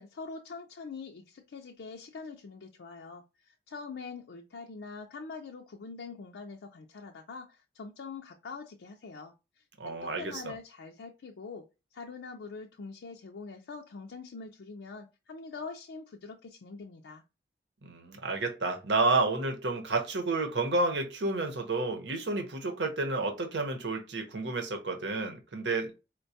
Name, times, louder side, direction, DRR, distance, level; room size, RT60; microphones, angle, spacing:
voice 1, 0.0-17.2, left 4 dB, 80° left, 0.4 m, -44 dB
voice 2, 9.8-10.4 17.8-25.9, right 3 dB, 75° right, 0.9 m, -30 dB
4.5 x 2.2 x 2.7 m
head